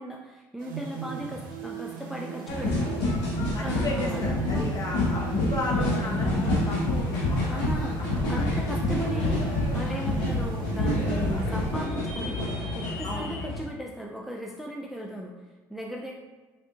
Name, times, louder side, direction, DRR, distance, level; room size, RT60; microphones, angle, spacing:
voice 1, 0.0-3.1 3.6-4.7 7.5-9.4 9.7-15.3 15.7-16.1, equal, ahead, -1 dB, 0.3 m, -37 dB
sound 1, 0.6-12.5, right 8 dB, 90° right, 0.4 m, -40 dB
sound 2, 2.5-13.6, left 1 dB, 80° left, 1.0 m, -27 dB
voice 2, 3.5-7.6 8.0-8.5 13.0-13.3, left 1 dB, 35° left, -1 dB, 0.9 m, -35 dB
3.6 x 2.6 x 2.3 m, 1.3 s
hypercardioid pair, 65°, 11 cm